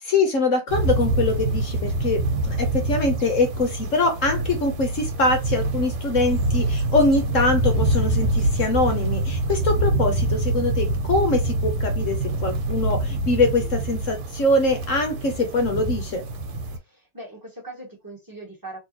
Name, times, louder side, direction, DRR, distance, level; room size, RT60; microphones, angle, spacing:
voice 1, 0.0-16.2, left 2 dB, 60° left, 0.8 m, -23 dB
sound 1, 0.7-16.8, right 2 dB, 90° right, 1.9 m, -25 dB
voice 2, 16.8-18.8, right 2 dB, 15° right, 0.9 m, -40 dB
3.7 x 3.3 x 2.9 m
omnidirectional pair, 2.3 m